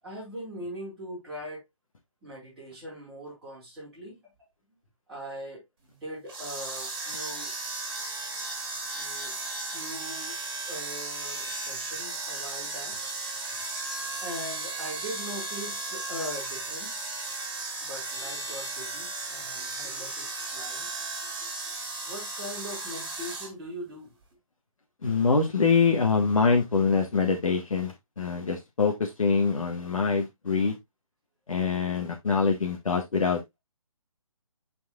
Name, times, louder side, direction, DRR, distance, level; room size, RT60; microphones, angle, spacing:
voice 1, 0.0-1.6 2.2-4.2 5.1-5.6 5.9-7.5 8.9-9.4 9.7-10.4 10.7-13.1 14.2-17.1 17.8-20.9 22.0-24.1, equal, ahead, 3.4 m, -41 dB
sound 1, 6.3-23.5, right 3 dB, 40° right, 2.1 m, -35 dB
voice 2, 25.0-30.7 31.5-33.4, left 5 dB, 70° left, 1.6 m, -24 dB
9.2 x 4.6 x 2.4 m
hypercardioid pair, 180°, 18 cm